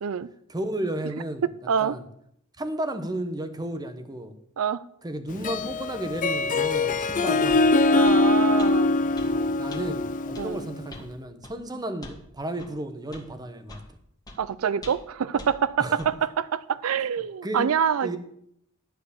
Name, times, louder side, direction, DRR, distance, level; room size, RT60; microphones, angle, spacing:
voice 1, 0.5-1.4 1.8-2.0 2.6-4.4 5.0-7.6 9.3-13.8 15.8-16.0 17.4-17.7 18.0-18.2, right 1 dB, 20° right, 1.0 m, -33 dB
voice 2, 1.4-2.0 4.6-4.8 7.9-8.9 10.4-10.7 14.4-18.2, right 7 dB, 85° right, 0.4 m, -26 dB
Harp, 5.3-10.8, left 2 dB, 40° left, 0.5 m, -23 dB
sound 1, 6.9-7.0 7.5-7.7 8.0-8.2 8.6-8.7 9.2-9.3 9.7-9.8 10.3-10.5 10.9-11.1 11.4-11.6 12.0-12.2 12.6-12.7 13.1-13.3 13.7-13.9 14.3-14.4 14.8-15.1 15.4-15.5 16.0-16.1, left 2 dB, 20° left, 1.8 m, -43 dB
11.5 x 4.8 x 8.4 m
head